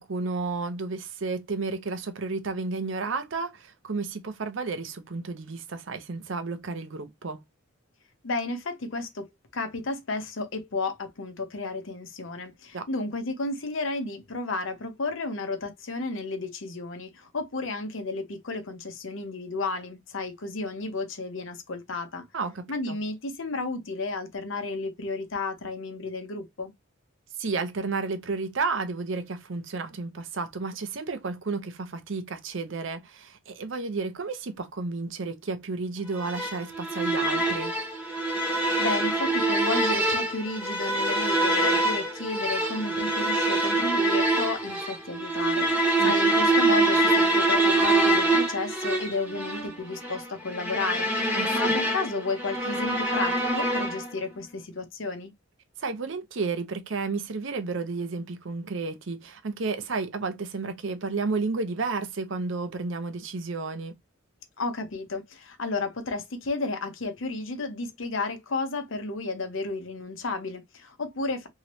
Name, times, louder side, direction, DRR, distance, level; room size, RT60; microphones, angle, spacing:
voice 1, 0.0-7.4 12.7-12.8 22.3-23.0 27.4-37.7 46.0-46.1 51.3-51.8 55.8-63.9, right 4 dB, 60° right, 0.6 m, -32 dB
voice 2, 8.2-9.3 9.5-22.2 22.7-26.7 38.8-51.1 51.5-55.3 64.6-71.5, left 3 dB, 65° left, 0.7 m, -32 dB
sound 1, 36.2-54.2, right 2 dB, 5° right, 1.0 m, -25 dB
2.9 x 2.8 x 3.0 m
head